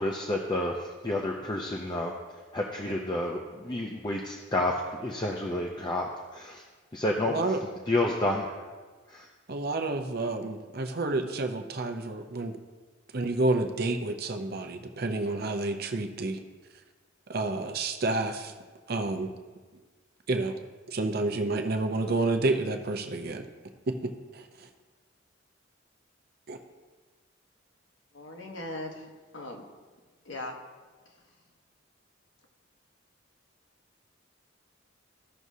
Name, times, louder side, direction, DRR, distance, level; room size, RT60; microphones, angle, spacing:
voice 1, 0.0-2.1 2.5-6.1 6.3-6.6 6.9-7.6 7.9-8.6 9.1-9.3, left 1 dB, 20° left, -1 dB, 0.5 m, -30 dB
voice 2, 7.3-7.6 9.5-12.6 13.1-16.4 17.3-18.5 18.9-19.3 20.3-20.6 20.9-23.5 23.9-24.7 26.5-26.6, right 2 dB, 50° right, 6 dB, 0.6 m, -29 dB
voice 3, 28.1-29.7 30.2-30.6 31.1-31.2, left 1 dB, 70° left, 2 dB, 1.2 m, -39 dB
15.0 x 6.2 x 2.7 m, 1.4 s
head